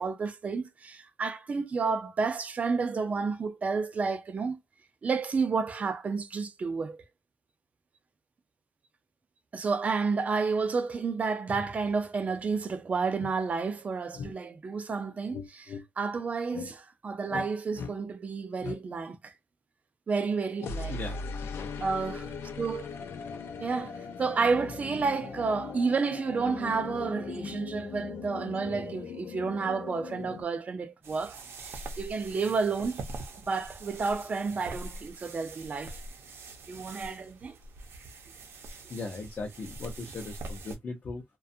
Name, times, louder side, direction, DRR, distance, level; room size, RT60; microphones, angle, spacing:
voice 1, 0.0-4.6 5.0-7.0 9.5-19.3 20.1-21.0 21.8-22.3 22.6-22.9 23.6-33.0 33.5-36.0 36.7-37.6, right 4 dB, 35° right, 0.4 m, -31 dB
sound 1, 12.8-12.9 13.2-13.3 14.1-14.3 15.3-15.9 16.5-16.7 17.3-17.5 17.7-18.0 18.6-18.8 20.6-30.4, left 5 dB, 90° left, 0.5 m, -39 dB
voice 2, 20.9-21.9 38.9-41.2, left 3 dB, 45° left, 0.6 m, -39 dB
sound 2, 31.0-40.8, right 2 dB, 80° right, 0.6 m, -44 dB
2.5 x 2.3 x 2.6 m
wide cardioid pair, 170°, 4 cm